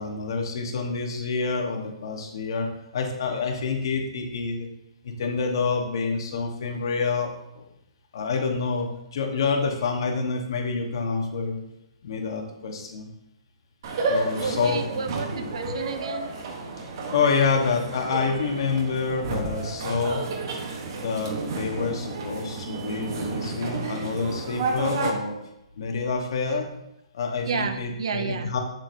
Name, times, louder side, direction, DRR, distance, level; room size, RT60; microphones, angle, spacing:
voice 1, 0.0-4.7 5.0-7.6 8.1-11.6 12.0-13.1 14.1-15.0 17.1-20.3 21.0-25.4 25.8-26.7 27.1-28.6, left 4 dB, 45° left, 3 dB, 1.1 m, -27 dB
sound 1, 13.8-25.1, right 3 dB, 40° right, 1.0 m, -31 dB
voice 2, 14.3-16.3 27.5-28.5, right 5 dB, 60° right, 9 dB, 0.6 m, -31 dB
7.5 x 6.9 x 2.6 m, 0.86 s
hypercardioid pair, 175°, 3 cm